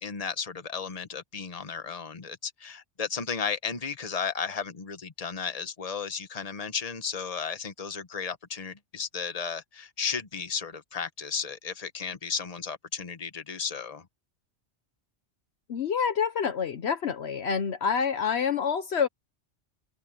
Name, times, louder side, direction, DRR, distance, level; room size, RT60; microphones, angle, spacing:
voice 1, 0.0-14.0, left 6 dB, 35° left, 1.2 m, -34 dB
voice 2, 15.7-19.1, left 6 dB, 65° left, 1.1 m, -27 dB
omnidirectional pair, 1.2 m